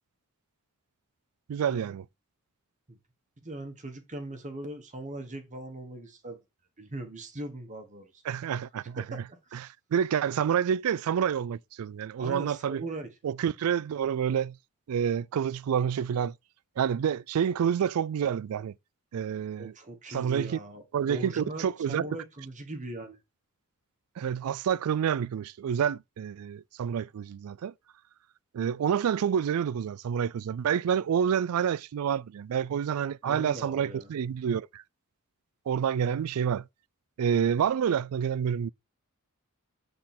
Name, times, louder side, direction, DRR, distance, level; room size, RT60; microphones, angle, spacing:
voice 1, 1.5-2.0 8.3-9.2 9.5-9.6 9.9-12.8 13.2-14.5 14.9-16.3 16.8-18.7 19.1-19.7 20.1-20.6 20.9-22.1 24.2-27.7 28.5-34.8 35.7-36.6 37.2-38.7, right 8 dB, 70° right, 0.3 m, -28 dB
voice 2, 3.4-6.4 6.8-8.2 9.1-9.6 12.2-13.1 19.6-23.2 33.2-34.1, right 1 dB, 35° right, 1.2 m, -40 dB
7.5 x 3.8 x 4.3 m
head